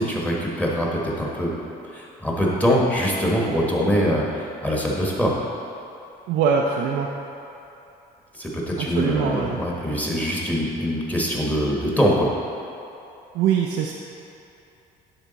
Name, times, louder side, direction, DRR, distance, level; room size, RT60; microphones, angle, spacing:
voice 1, 0.0-1.5 1.9-5.3 8.3-12.3, equal, 10° left, -3 dB, 1.2 m, -23 dB
voice 2, 6.3-7.1 8.8-9.6 13.3-13.9, right 7 dB, 85° right, 0 dB, 0.5 m, -22 dB
10.5 x 3.6 x 4.0 m, 2.8 s
cardioid pair, 110°, 17 cm